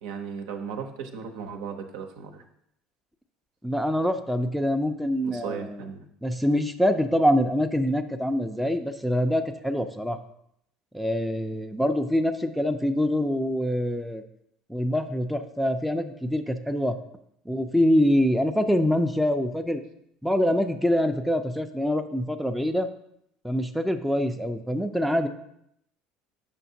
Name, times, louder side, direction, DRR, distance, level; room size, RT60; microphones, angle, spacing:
voice 1, 0.0-2.4 5.2-6.1, right 6 dB, 75° right, 4 dB, 0.7 m, -36 dB
voice 2, 3.6-5.8 6.2-10.2 10.9-14.2 14.7-17.0 17.5-19.8 20.2-22.9 23.4-25.3, equal, ahead, 5 dB, 0.4 m, -25 dB
6.7 x 5.6 x 2.7 m, 0.74 s
hypercardioid pair, 70°, 3 cm